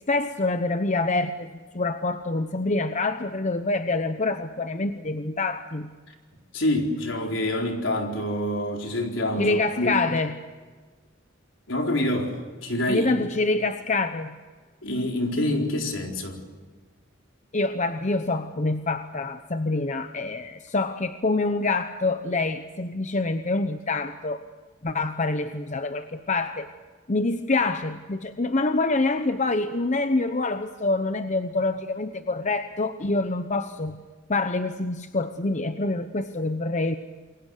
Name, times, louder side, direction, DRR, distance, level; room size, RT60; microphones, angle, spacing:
voice 1, 0.1-5.9 9.4-10.4 12.9-14.4 17.5-24.4 24.8-26.7 27.1-34.0 34.3-36.9, left 2 dB, 35° left, 9 dB, 0.9 m, -26 dB
voice 2, 6.5-10.0 11.7-13.2 14.8-16.4, left 1 dB, 70° left, 2 dB, 4.3 m, -26 dB
28.5 x 22.5 x 6.6 m, 1.4 s
head